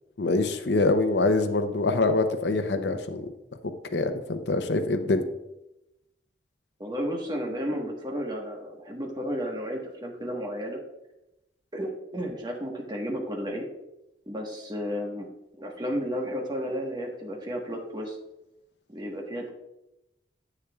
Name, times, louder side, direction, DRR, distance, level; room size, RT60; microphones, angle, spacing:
voice 1, 0.2-3.3 3.9-5.2, left 2 dB, 75° left, 8 dB, 0.7 m, -24 dB
voice 2, 6.8-10.8 11.7-13.6 14.3-15.3 15.6-18.2 18.9-19.5, equal, 25° right, 0 dB, 1.3 m, -32 dB
9.9 x 8.4 x 2.4 m, 0.92 s
head